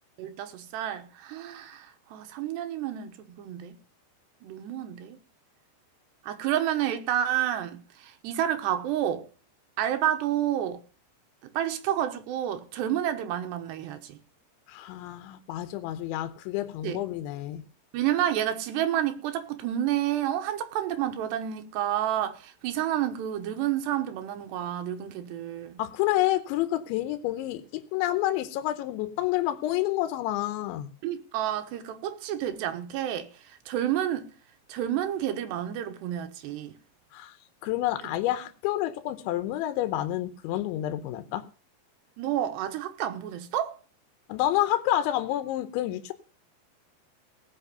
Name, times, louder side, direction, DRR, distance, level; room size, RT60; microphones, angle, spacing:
voice 1, 0.2-3.8 4.4-5.2 6.2-9.3 9.8-10.8 11.5-14.2 16.8-17.0 17.9-25.8 31.0-34.3 34.7-36.8 42.2-43.8, right 11 dB, 75° right, 3.0 m, -30 dB
voice 2, 14.7-17.6 25.8-30.9 37.1-37.4 37.6-41.4 44.3-46.1, left 14 dB, 80° left, 3.1 m, -29 dB
17.5 x 6.0 x 6.7 m
omnidirectional pair, 5.3 m